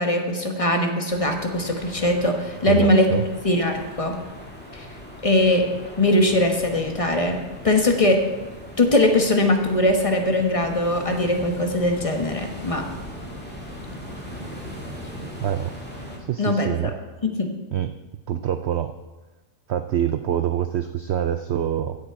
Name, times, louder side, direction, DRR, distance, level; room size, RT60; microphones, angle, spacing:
voice 1, 0.0-3.1 3.4-4.2 4.7-4.9 5.2-5.6 6.0-7.4 7.6-8.2 8.8-12.8 16.4-16.7 17.2-17.5, left 1 dB, 25° left, 4 dB, 1.1 m, -21 dB
sound 1, 1.1-16.2, equal, 5° left, 2.0 m, -39 dB
voice 2, 2.7-3.2 15.4-15.7 16.3-16.9 17.7-17.9 18.3-18.9 19.7-22.0, right 10 dB, 85° right, 9 dB, 0.5 m, -25 dB
15.5 x 6.9 x 4.7 m, 1.2 s
omnidirectional pair, 1.7 m